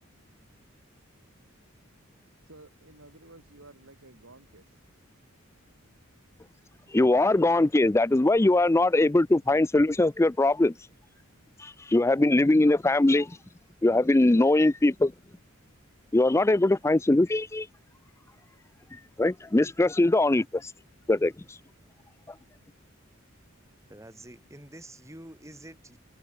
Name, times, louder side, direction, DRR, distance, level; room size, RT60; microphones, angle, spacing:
voice 1, 2.5-4.8, right 2 dB, 70° right, 4.6 m, -52 dB
voice 2, 6.9-10.7 11.6-13.4 13.8-15.1 16.1-17.7 18.9-20.7 21.1-21.6, left 2 dB, 15° left, 0.4 m, -22 dB
voice 3, 23.9-26.0, right 1 dB, 15° right, 6.2 m, -47 dB
head